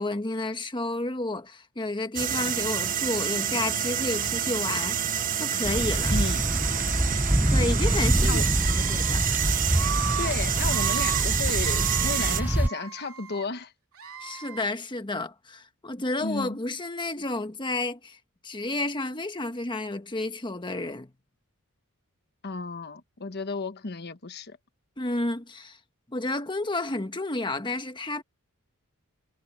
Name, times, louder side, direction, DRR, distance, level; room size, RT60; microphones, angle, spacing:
voice 1, 0.0-5.0 5.4-6.1 7.5-9.3 14.2-18.2 18.4-21.1 25.0-25.8 26.1-28.2, left 2 dB, 20° left, 1.4 m, -31 dB
sound 1, 2.1-12.4, right 9 dB, 40° right, 1.1 m, -28 dB
sound 2, 5.6-12.7, right 1 dB, 10° right, 0.6 m, -26 dB
voice 2, 6.1-6.4 8.2-8.4 10.2-13.7 16.2-16.6 22.4-24.6, left 3 dB, 50° left, 1.2 m, -33 dB
Screaming, 8.6-9.1 9.7-10.3 10.6-11.3 11.6-13.5 13.9-14.7, right 9 dB, 75° right, 3.1 m, -36 dB
head